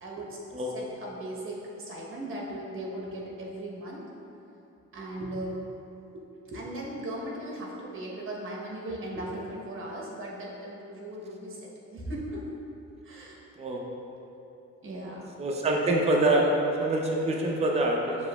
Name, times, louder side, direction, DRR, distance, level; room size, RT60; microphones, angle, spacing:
voice 1, 0.0-4.1 4.9-5.6 6.1-12.4 13.0-13.4 14.8-15.2, right 1 dB, 45° right, -3 dB, 1.0 m, -38 dB
voice 2, 15.4-16.5 16.8-18.2, right 2 dB, 20° right, -1 dB, 0.5 m, -25 dB
7.0 x 2.9 x 2.3 m, 2.9 s
cardioid pair, 90°, 30 cm